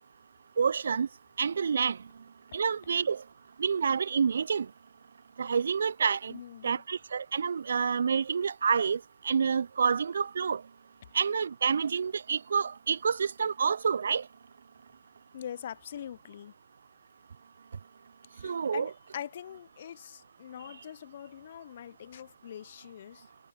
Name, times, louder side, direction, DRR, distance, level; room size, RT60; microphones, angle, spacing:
voice 1, 0.6-1.1 1.4-2.0 2.5-3.2 3.6-4.7 5.4-6.3 6.6-9.0 9.2-10.6 11.1-14.2 18.4-18.9, right 6 dB, 60° right, 0.4 m, -28 dB
voice 2, 6.3-6.8 15.3-16.5 18.3-23.3, left 10 dB, 45° left, 0.6 m, -43 dB
figure-of-eight pair, 140°, 0 cm